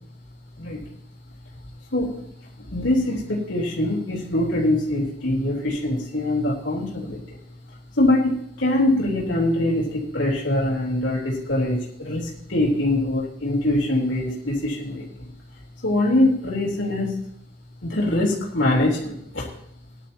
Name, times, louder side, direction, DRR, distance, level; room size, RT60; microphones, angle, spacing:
voice 1, 1.9-2.3 2.7-7.4 8.0-15.3 15.8-17.2 17.8-19.5, left 1 dB, 75° left, -4 dB, 3.8 m, -23 dB
19.0 x 11.5 x 3.0 m, 0.71 s
head